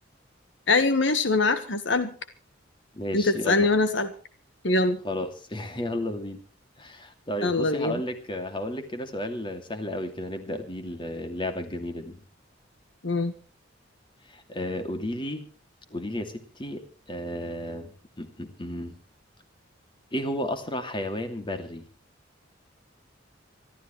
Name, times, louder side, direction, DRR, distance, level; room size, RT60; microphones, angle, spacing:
voice 1, 0.7-2.1 3.1-4.1 4.6-5.0 7.4-8.0 13.0-13.3, left 3 dB, 70° left, 10 dB, 1.5 m, -23 dB
voice 2, 2.9-3.7 5.0-6.4 6.8-12.2 14.3-15.5 15.9-19.0 20.1-21.8, left 1 dB, 25° left, 7 dB, 2.6 m, -33 dB
26.0 x 13.5 x 3.2 m, 0.38 s
head